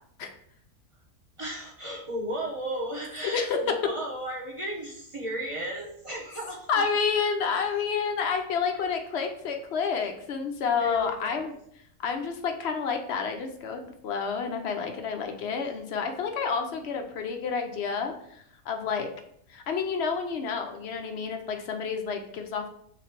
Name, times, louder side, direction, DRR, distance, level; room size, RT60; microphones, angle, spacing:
voice 1, 1.4-6.8 10.8-11.4, right 1 dB, 30° right, -4 dB, 0.6 m, -34 dB
voice 2, 3.3-3.7 6.7-11.5 12.0-19.1 19.5-22.7, left 5 dB, 65° left, 4 dB, 0.7 m, -29 dB
3.9 x 3.0 x 4.4 m, 0.69 s
omnidirectional pair, 1.6 m